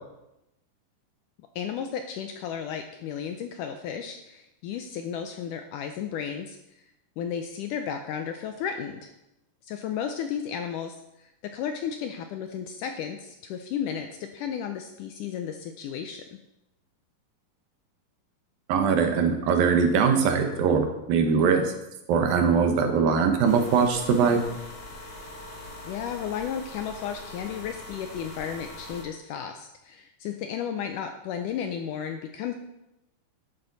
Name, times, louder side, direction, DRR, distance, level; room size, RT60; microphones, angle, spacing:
voice 1, 1.6-6.6 7.2-9.1 9.7-16.4 25.9-32.5, left 8 dB, 80° left, 6 dB, 1.9 m, -33 dB
voice 2, 18.7-21.6 22.1-24.4, right 6 dB, 75° right, 5 dB, 2.9 m, -22 dB
sound 1, 23.4-29.0, left 2 dB, 45° left, 2.4 m, -42 dB
11.5 x 9.1 x 4.0 m, 0.90 s
omnidirectional pair, 4.2 m